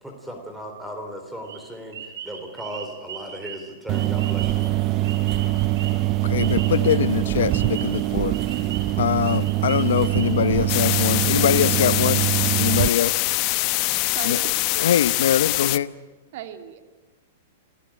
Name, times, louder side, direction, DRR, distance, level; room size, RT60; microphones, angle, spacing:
voice 1, 0.0-4.8, equal, 5° right, 4 dB, 3.7 m, -37 dB
sound 1, 1.5-7.1 7.5-10.7, right 7 dB, 75° right, 6.9 m, -39 dB
sound 2, 3.9-12.9, right 15 dB, 35° right, 0.7 m, -23 dB
voice 2, 6.2-8.4 9.0-12.2 12.6-13.3 14.2-14.4 14.8-15.9, left 9 dB, 80° left, 15 dB, 1.0 m, -23 dB
sound 3, 10.7-15.8, left 21 dB, 40° left, 0.9 m, -23 dB
voice 3, 14.1-14.5 16.3-16.8, right 11 dB, 55° right, 7 dB, 3.0 m, -35 dB
28.5 x 16.5 x 8.9 m, 1.3 s
hypercardioid pair, 145°, 0 cm